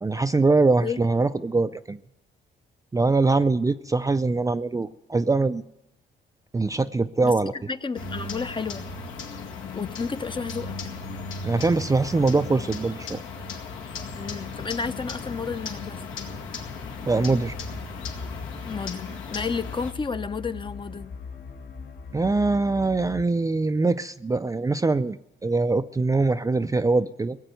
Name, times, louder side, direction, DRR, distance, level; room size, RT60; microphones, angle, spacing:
voice 1, 0.0-2.0 2.9-5.6 6.5-7.5 11.4-13.2 17.1-17.6 22.1-25.2 25.4-27.4, right 3 dB, 15° right, 10 dB, 0.5 m, -23 dB
voice 2, 7.2-8.9 9.7-10.8 14.1-16.0 18.6-21.2, left 5 dB, 25° left, 11 dB, 0.7 m, -32 dB
sound 1, 8.0-19.9, left 4 dB, 80° left, 2.2 m, -36 dB
sound 2, 14.0-23.2, left 4 dB, 55° left, 1.3 m, -40 dB
18.0 x 7.9 x 9.2 m, 0.85 s
cardioid pair, 90°, 20 cm